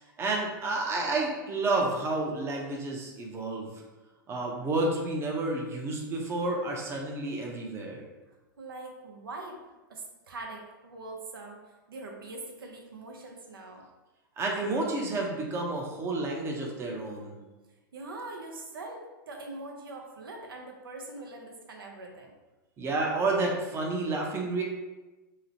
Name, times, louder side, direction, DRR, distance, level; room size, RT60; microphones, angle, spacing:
voice 1, 0.2-3.7 4.3-8.0 14.4-17.3 22.8-24.6, right 2 dB, 20° right, -1 dB, 0.5 m, -30 dB
voice 2, 8.6-9.6 9.9-11.6 11.9-13.8 17.9-22.3, right 2 dB, 85° right, 1 dB, 0.5 m, -42 dB
2.8 x 2.0 x 2.7 m, 1.1 s
hypercardioid pair, 110°, 12 cm